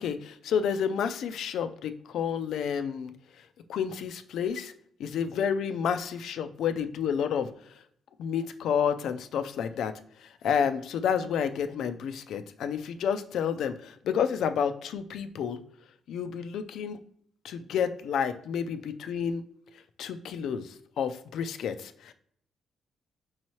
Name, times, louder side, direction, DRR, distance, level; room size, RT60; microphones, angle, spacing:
voice 1, 0.0-3.1 3.7-4.7 5.0-7.5 8.2-9.9 10.2-15.6 16.1-17.0 17.4-19.4 20.0-22.1, left 7 dB, 75° left, 10 dB, 0.3 m, -30 dB
5.4 x 2.9 x 3.0 m, 0.64 s
cardioid pair, 115°, 0 cm